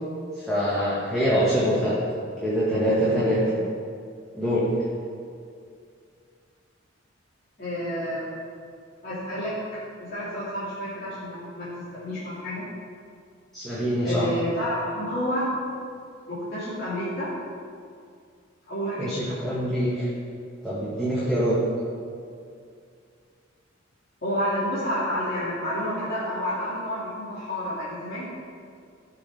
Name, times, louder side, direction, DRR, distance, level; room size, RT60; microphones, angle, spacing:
voice 1, 0.4-1.9 2.4-3.4 4.3-4.6 13.5-14.3 19.0-20.1 20.6-21.6, equal, ahead, -11 dB, 1.9 m, -24 dB
voice 2, 7.6-8.3 9.0-12.6 14.0-15.5 16.3-17.3 18.7-19.4 24.2-28.3, equal, 50° left, -12 dB, 2.6 m, -30 dB
16.0 x 6.1 x 3.5 m, 2.3 s
head